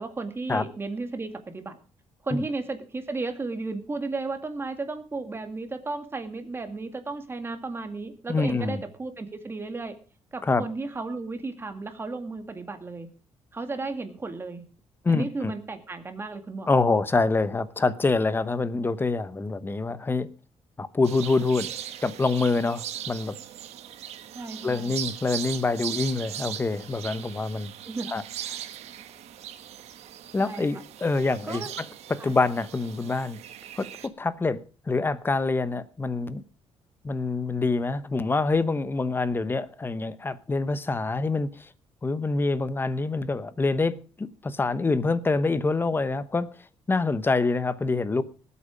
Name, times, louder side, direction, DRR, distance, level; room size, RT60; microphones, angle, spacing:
voice 1, 0.0-1.8 2.2-9.9 10.3-13.1 13.5-14.6 15.1-16.7 24.3-25.0 27.9-28.1 30.4-30.8 31.4-31.7 32.2-32.3, right 3 dB, 20° right, 2.0 m, -34 dB
voice 2, 8.3-8.8 10.4-10.6 15.0-15.5 16.7-20.3 20.8-21.7 22.0-23.4 24.6-27.7 28.1-28.2 30.3-31.6 32.1-33.4 33.8-34.6 34.9-36.4 37.0-41.7 42.0-46.5 46.9-48.2, left 3 dB, 20° left, 0.9 m, -26 dB
sound 1, 21.0-34.1, right 10 dB, 85° right, 1.4 m, -39 dB
19.0 x 8.5 x 5.1 m
cardioid pair, 140°, 11 cm